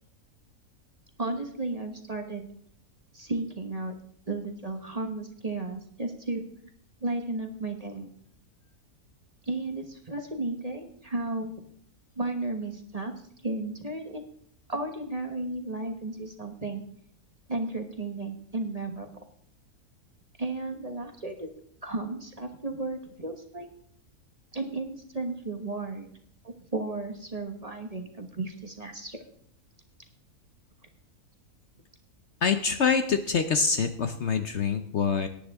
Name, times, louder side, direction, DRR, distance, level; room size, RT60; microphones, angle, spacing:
voice 1, 1.2-2.5 3.1-3.9 4.3-6.4 7.0-8.1 9.5-11.5 12.2-13.1 13.4-14.3 14.7-16.8 17.5-19.1 20.4-21.5 21.8-23.7 24.5-26.1 26.4-29.2, right 2 dB, 25° right, 4 dB, 1.2 m, -34 dB
voice 2, 32.4-35.3, left 6 dB, 55° left, 8 dB, 1.0 m, -25 dB
18.0 x 9.8 x 3.6 m, 0.66 s
omnidirectional pair, 1.6 m